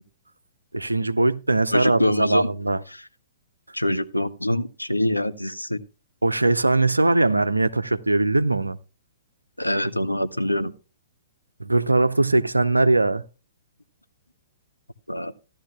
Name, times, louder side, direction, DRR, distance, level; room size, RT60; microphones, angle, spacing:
voice 1, 0.7-2.8 6.2-8.8 11.6-13.2, right 2 dB, 85° right, 0.6 m, -20 dB
voice 2, 1.7-2.5 2.9-3.1 3.7-5.8 9.6-10.7 15.1-15.3, left 1 dB, 90° left, 0.7 m, -25 dB
15.5 x 12.0 x 2.2 m
figure-of-eight pair, 115°, 0 cm